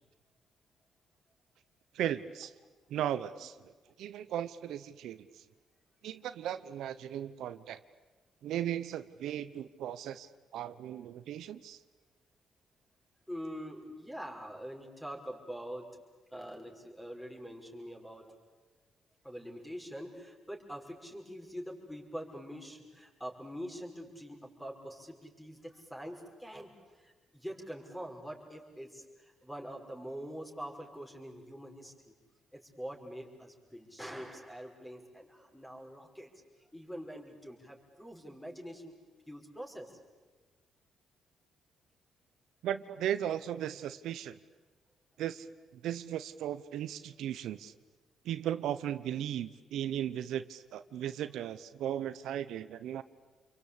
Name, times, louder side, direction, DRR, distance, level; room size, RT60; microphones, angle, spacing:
voice 1, 1.9-2.5 2.9-3.7 4.0-5.4 6.0-7.8 8.4-11.8 42.6-44.4 45.2-45.5 45.7-47.7 48.2-53.0, right 11 dB, 80° right, 12 dB, 0.9 m, -36 dB
voice 2, 13.3-15.8 16.3-18.3 19.2-31.9 32.5-36.3 36.7-38.9 39.3-40.0, equal, 5° left, 1 dB, 5.6 m, -44 dB
29.0 x 23.5 x 8.6 m, 1.3 s
cardioid pair, 90°, 0 cm